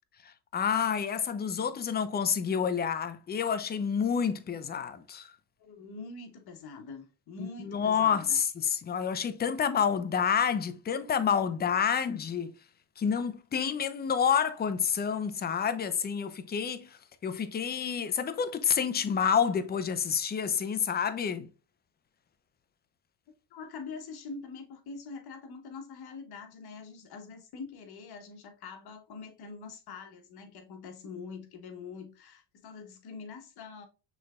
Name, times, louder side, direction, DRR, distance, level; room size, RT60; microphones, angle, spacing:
voice 1, 0.2-5.3 7.4-12.5 13.0-16.9 17.2-21.5, left 7 dB, 20° left, 0.5 m, -29 dB
voice 2, 5.6-8.4 23.5-33.9, left 4 dB, 55° left, 1.4 m, -44 dB
6.1 x 3.4 x 2.3 m
supercardioid pair, 90°, 45 cm